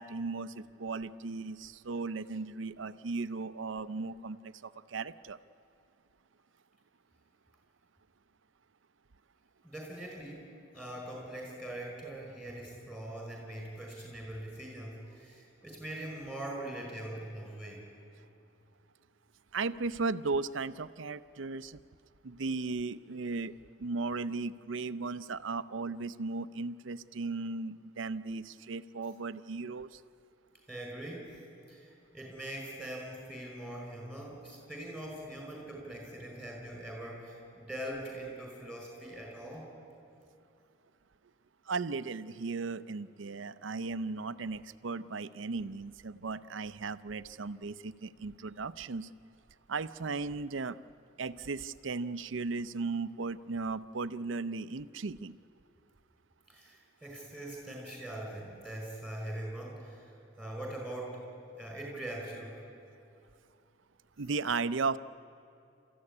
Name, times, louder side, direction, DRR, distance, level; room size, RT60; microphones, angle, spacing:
voice 1, 0.0-5.4 19.5-21.8 22.2-23.5 23.8-30.0 41.7-49.1 49.7-50.8 51.2-55.4 64.2-65.0, right 4 dB, 80° right, 14 dB, 0.6 m, -36 dB
voice 2, 9.6-10.5 10.7-17.8 30.7-31.4 31.7-39.7 56.5-61.3 61.6-62.6, right 1 dB, 5° left, 0 dB, 5.1 m, -42 dB
28.5 x 14.5 x 9.8 m, 2.6 s
head